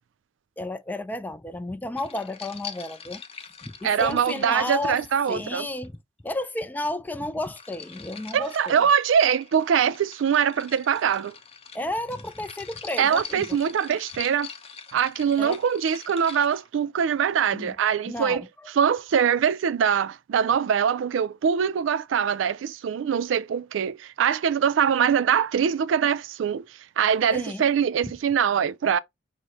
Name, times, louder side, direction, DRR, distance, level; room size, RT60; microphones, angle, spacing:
voice 1, 0.6-3.2 3.6-6.0 6.2-8.9 11.7-13.6 15.4-15.6 17.5-17.7 18.0-18.7 27.3-27.7 28.0-28.1, left 1 dB, 10° left, 0.3 m, -32 dB
sound 1, 2.0-5.9 7.1-16.6, left 6 dB, 30° left, 0.8 m, -44 dB
voice 2, 3.8-5.7 8.3-11.3 13.0-14.5 14.9-18.4 18.8-26.6 27.0-29.0, right 7 dB, 85° right, 0.3 m, -23 dB
6.2 x 2.1 x 4.0 m
head